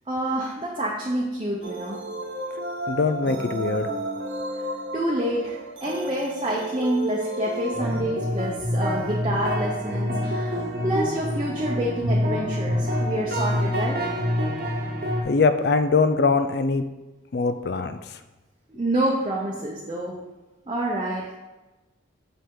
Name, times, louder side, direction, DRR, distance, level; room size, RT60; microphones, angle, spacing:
voice 1, 0.1-2.0 4.9-14.1 18.7-20.2 20.7-21.3, right 1 dB, 30° right, -4 dB, 0.7 m, -28 dB
sound 1, 1.6-8.0, right 1 dB, 80° right, 1.1 m, -33 dB
voice 2, 2.9-3.9 10.5-10.7 15.2-16.8 17.3-18.2, left 4 dB, 55° left, 10 dB, 0.4 m, -22 dB
sound 2, 7.7-15.2, equal, 50° right, 1.0 m, -26 dB
6.5 x 5.4 x 3.8 m, 1.1 s
head